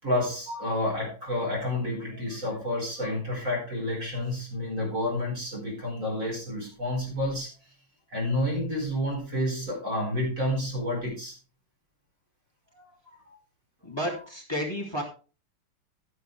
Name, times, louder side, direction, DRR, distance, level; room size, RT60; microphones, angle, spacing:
voice 1, 0.0-7.5 8.1-11.4 12.7-12.9 13.3-13.4, left 1 dB, 35° right, -1 dB, 5.3 m, -30 dB
voice 2, 13.8-15.0, equal, 10° left, -1 dB, 2.7 m, -31 dB
12.0 x 10.5 x 3.4 m, 0.34 s
omnidirectional pair, 2.3 m